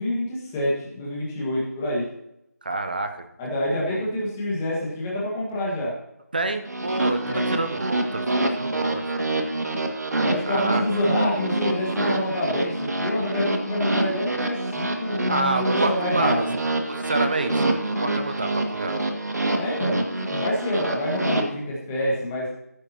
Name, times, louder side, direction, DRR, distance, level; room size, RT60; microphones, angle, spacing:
voice 1, 0.0-2.1 3.4-5.9 7.2-7.5 10.2-16.4 19.5-22.5, left 1 dB, 10° left, -6 dB, 1.6 m, -27 dB
voice 2, 2.6-3.2 3.8-4.0 6.3-7.2 7.5-9.3 10.5-10.8 15.3-16.5 16.9-17.7 18.0-18.9, right 2 dB, 30° right, 8 dB, 0.8 m, -28 dB
sound 1, 6.7-21.4, right 2 dB, 70° right, 2.0 m, -26 dB
15.5 x 9.7 x 2.9 m, 0.81 s
figure-of-eight pair, 175°, 9 cm